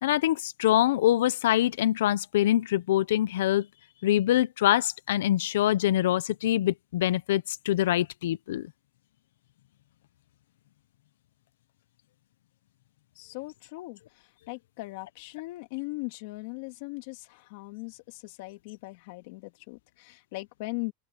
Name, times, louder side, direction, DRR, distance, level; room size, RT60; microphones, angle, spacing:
voice 1, 0.0-3.7 4.0-8.7, left 13 dB, 85° left, 0.8 m, -24 dB
voice 2, 13.2-20.9, left 24 dB, 60° left, 2.8 m, -39 dB
open air
supercardioid pair, 155°, 0 cm